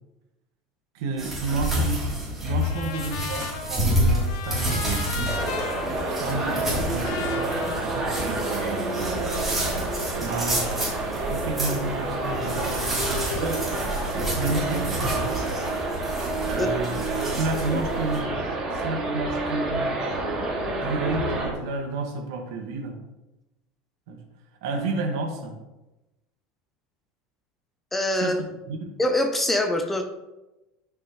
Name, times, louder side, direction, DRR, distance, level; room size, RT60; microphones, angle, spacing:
voice 1, 0.9-5.3 6.1-9.2 10.2-10.8 11.3-13.7 14.1-15.4 16.4-17.0 17.3-20.2 20.8-23.0 24.1-24.2 24.6-25.6 28.1-28.3 28.7-28.9, right 3 dB, 75° right, 3 dB, 1.8 m, -31 dB
sound 1, 1.2-18.2, right 1 dB, 10° right, 3.3 m, -29 dB
Trumpet, 2.6-8.8, left 6 dB, 65° left, 1.0 m, -37 dB
sound 2, 5.3-21.5, right 2 dB, 25° right, 2.3 m, -29 dB
voice 2, 16.6-16.9 17.7-17.8 27.9-28.4 29.0-30.0, left 1 dB, 10° left, 6 dB, 0.7 m, -24 dB
12.5 x 6.0 x 3.2 m, 1.0 s
cardioid pair, 160°, 2 cm